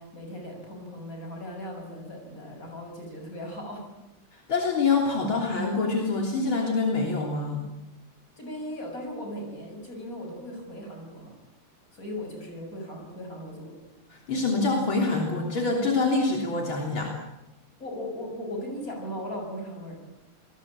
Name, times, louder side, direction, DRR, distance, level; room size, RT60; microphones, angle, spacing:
voice 1, 0.0-3.9 8.4-11.4 11.9-13.7 17.8-20.0, equal, 40° left, 2 dB, 7.5 m, -38 dB
voice 2, 4.5-7.7 14.1-17.1, left 3 dB, 70° left, 0 dB, 4.2 m, -25 dB
28.0 x 21.0 x 8.8 m, 0.94 s
omnidirectional pair, 2.3 m